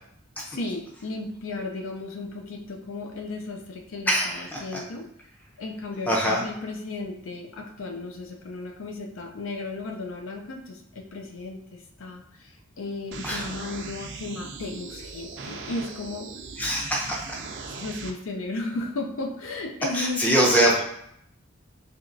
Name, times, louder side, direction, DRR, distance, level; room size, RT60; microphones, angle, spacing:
voice 1, 0.4-5.1 5.6-16.3 17.7-20.8, left 2 dB, 70° left, 3 dB, 0.5 m, -35 dB
voice 2, 4.1-4.8 6.1-6.4 13.2-13.5 16.6-17.2 19.9-20.8, right 1 dB, 10° left, -2 dB, 0.5 m, -23 dB
sound 1, 13.1-18.1, right 4 dB, 55° right, 0.4 m, -39 dB
3.5 x 2.9 x 2.6 m, 0.71 s
head